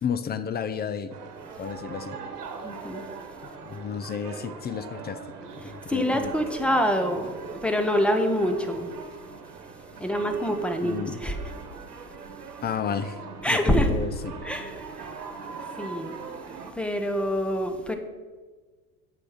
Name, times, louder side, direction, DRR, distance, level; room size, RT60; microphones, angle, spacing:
voice 1, 0.0-1.2 1.6-2.2 3.6-5.2 5.6-6.3 10.8-11.2 12.6-13.2 13.5-14.3, left 7 dB, 20° left, 0.6 m, -32 dB
sound 1, 1.1-16.7, right 5 dB, 90° right, 1.2 m, -41 dB
voice 2, 2.6-3.0 5.4-8.9 10.0-11.5 13.4-14.0 14.4-15.3 15.6-16.2 16.7-17.9, equal, ahead, 1.1 m, -26 dB
8.4 x 6.8 x 6.1 m
hypercardioid pair, 85°, 45 cm